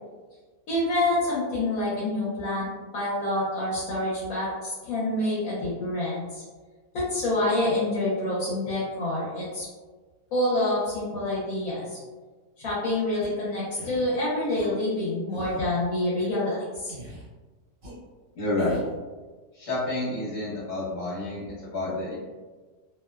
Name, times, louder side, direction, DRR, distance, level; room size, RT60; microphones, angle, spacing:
voice 1, 0.7-2.7 2.9-6.4 6.9-9.6 10.3-12.0 12.6-16.9, left 1 dB, 70° left, -8 dB, 1.1 m, -27 dB
sound 1, 13.2-13.3 13.8-14.0 14.6-14.7 15.3-15.6 16.2-16.3 16.9-17.3 17.8-17.9 18.6-18.9, right 1 dB, 50° right, 0.7 m, -41 dB
voice 2, 18.3-18.8 19.5-22.2, left 2 dB, 45° left, -8 dB, 1.2 m, -29 dB
2.7 x 2.1 x 2.2 m, 1.3 s
omnidirectional pair, 1.6 m